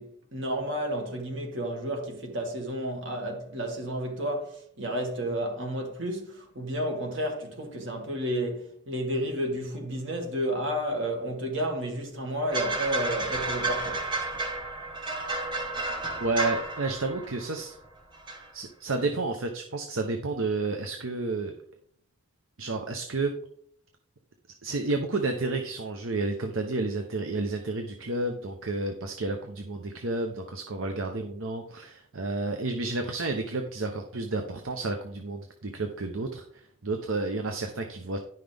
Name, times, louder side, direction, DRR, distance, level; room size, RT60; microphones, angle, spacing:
voice 1, 0.0-14.1, equal, 65° right, 2.2 m, -31 dB
sound 1, 12.5-17.9 18.1-18.5, right 2 dB, 25° right, 1.5 m, -32 dB
voice 2, 16.2-17.8 18.5-21.5 22.6-23.3 24.6-38.2, right 3 dB, 80° right, 0.8 m, -31 dB
11.0 x 5.7 x 3.5 m
head